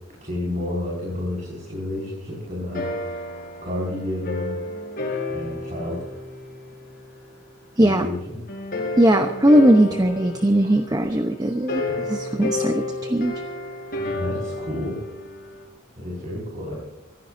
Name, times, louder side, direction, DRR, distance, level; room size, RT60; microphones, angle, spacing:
voice 1, 0.2-3.3 3.6-4.6 5.3-6.1 7.8-8.4 11.9-12.0 14.0-15.0 16.0-16.8, left 1 dB, 35° right, -3 dB, 5.6 m, -30 dB
sound 1, 2.7-7.3 8.5-15.6, left 2 dB, 45° left, 4.7 m, -31 dB
voice 2, 7.8-8.1 9.0-13.3, right 1 dB, 20° right, 6 dB, 0.8 m, -19 dB
24.5 x 15.5 x 2.7 m, 0.90 s
head